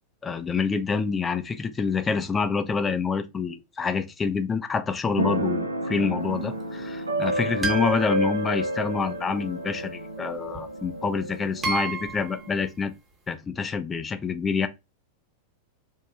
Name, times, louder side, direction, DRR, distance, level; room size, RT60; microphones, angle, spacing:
voice 1, 0.2-12.9 13.3-14.7, left 5 dB, 20° left, 0.4 m, -27 dB
Keyboard (musical), 5.2-12.7, right 1 dB, 80° right, 0.5 m, -30 dB
sound 1, 7.6-9.1 10.5-10.6 11.6-12.5, right 4 dB, 15° right, 0.8 m, -32 dB
3.0 x 2.2 x 2.3 m
figure-of-eight pair, 90°, 0 cm